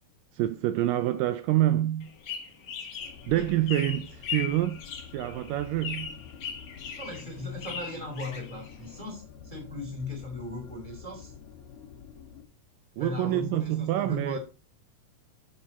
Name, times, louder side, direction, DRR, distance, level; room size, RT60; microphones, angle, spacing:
voice 1, 0.4-2.1 3.3-4.8 5.1-6.1 13.0-14.4, right 14 dB, 80° right, 2.1 m, -27 dB
sound 1, 2.0-9.0, left 7 dB, 80° left, 0.9 m, -39 dB
sound 2, 3.0-12.4, left 8 dB, 65° left, 2.3 m, -48 dB
voice 2, 7.0-11.3 13.0-14.4, left 2 dB, 10° left, 2.1 m, -38 dB
8.0 x 6.5 x 4.0 m
omnidirectional pair, 4.1 m